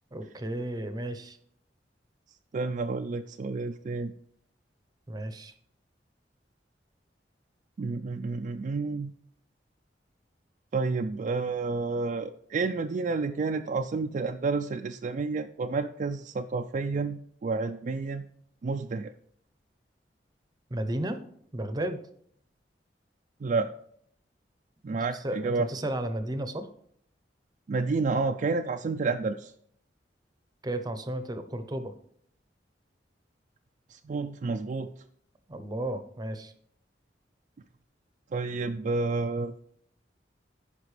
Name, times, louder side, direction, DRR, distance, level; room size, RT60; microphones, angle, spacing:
voice 1, 0.1-1.4 5.1-5.5 20.7-21.2 21.5-22.1 25.1-26.7 30.6-31.9 35.5-36.5, right 1 dB, 25° right, 9 dB, 0.7 m, -33 dB
voice 2, 2.5-4.1 7.8-9.1 10.7-18.3 18.6-19.1 23.4-23.7 24.8-25.7 27.7-29.5 33.9-34.9 38.3-39.5, right 4 dB, 45° right, 6 dB, 0.4 m, -30 dB
15.0 x 5.2 x 3.2 m, 0.66 s
head